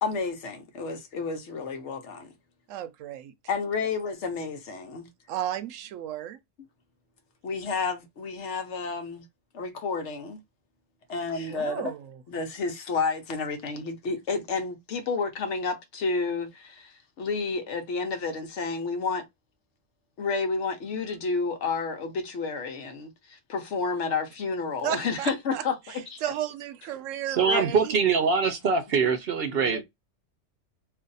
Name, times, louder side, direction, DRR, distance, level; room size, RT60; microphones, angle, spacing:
voice 1, 0.0-2.3 3.5-5.1 7.4-9.2 9.5-10.4 11.1-11.9 12.3-19.3 20.2-26.4 26.8-26.9 27.5-27.6 28.6-28.8 29.6-29.8, left 4 dB, 70° left, 1.1 m, -31 dB
voice 2, 2.7-3.3 5.3-6.4 11.5-12.2 24.8-25.6 26.2-27.9, right 11 dB, 90° right, 0.9 m, -33 dB
voice 3, 27.3-29.8, right 5 dB, 60° right, 0.7 m, -23 dB
2.6 x 2.5 x 3.9 m
omnidirectional pair, 1.3 m